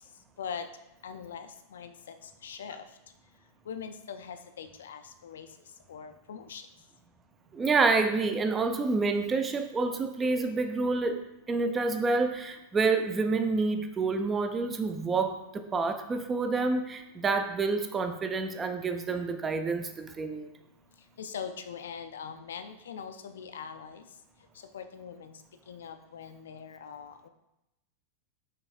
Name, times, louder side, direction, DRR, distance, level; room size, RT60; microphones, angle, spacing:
voice 1, 1.0-2.1 2.4-2.8 3.7-5.5 5.9-6.6 21.2-24.0 24.7-25.3 25.7-27.3, left 7 dB, 65° left, 8 dB, 0.3 m, -41 dB
voice 2, 7.5-20.5, right 3 dB, 20° right, 7 dB, 0.4 m, -28 dB
5.7 x 3.4 x 2.4 m, 0.89 s
figure-of-eight pair, 90°, 0 cm